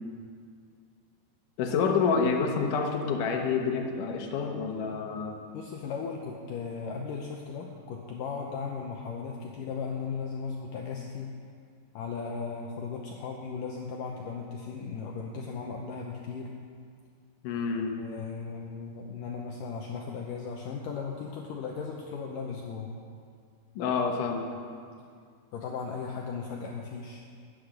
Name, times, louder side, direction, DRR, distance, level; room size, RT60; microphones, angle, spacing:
voice 1, 1.6-5.4 17.4-17.9 23.8-24.5, left 5 dB, 65° left, 3 dB, 2.2 m, -28 dB
voice 2, 5.5-11.3 11.9-16.5 18.0-22.9 25.5-27.2, left 5 dB, 85° left, 0 dB, 1.9 m, -37 dB
12.0 x 9.8 x 6.6 m, 2.2 s
omnidirectional pair, 5.0 m